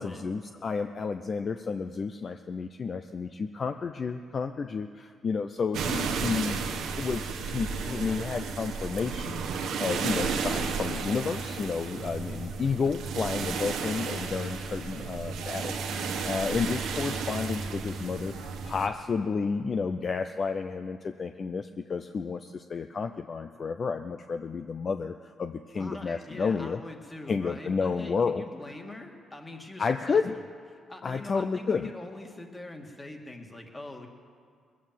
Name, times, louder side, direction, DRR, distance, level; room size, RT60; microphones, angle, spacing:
voice 1, 0.0-6.7 7.0-18.3 18.6-26.8 27.3-28.4 29.8-30.3 31.0-31.9, left 5 dB, 45° left, 8 dB, 0.5 m, -31 dB
sound 1, 5.7-18.9, right 5 dB, 85° right, 1.3 m, -33 dB
voice 2, 25.8-30.4 30.7-34.1, left 2 dB, 20° left, 3 dB, 1.9 m, -43 dB
20.5 x 8.5 x 7.4 m, 2.2 s
cardioid pair, 95°, 0 cm